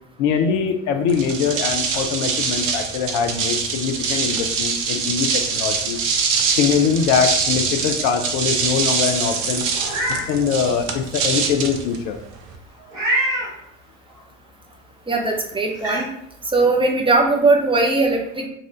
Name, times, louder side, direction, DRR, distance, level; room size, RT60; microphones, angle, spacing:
voice 1, 0.2-6.0 6.5-9.6 10.1-12.2, left 6 dB, 50° left, 5 dB, 0.5 m, -22 dB
sound 1, 1.1-12.6, right 5 dB, 50° right, 0.7 m, -24 dB
Meow, 9.7-10.2 10.7-10.8 12.9-13.5 15.1-15.2 15.7-16.0, right 1 dB, 75° right, 1.5 m, -23 dB
voice 2, 15.1-16.1 16.5-18.5, right 3 dB, 15° right, 0 dB, 0.8 m, -19 dB
4.1 x 2.4 x 3.7 m, 0.75 s
figure-of-eight pair, 60°, 38 cm